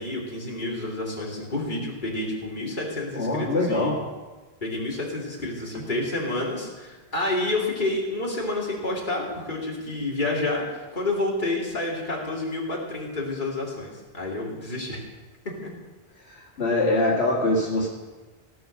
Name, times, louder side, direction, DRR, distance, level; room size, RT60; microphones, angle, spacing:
voice 1, 0.0-3.9 4.6-15.0 15.6-15.7, left 2 dB, 50° left, -3 dB, 2.7 m, -29 dB
voice 2, 3.1-4.0 16.3-17.9, left 2 dB, 80° left, -3 dB, 2.2 m, -23 dB
17.0 x 6.3 x 6.4 m, 1.2 s
omnidirectional pair, 1.1 m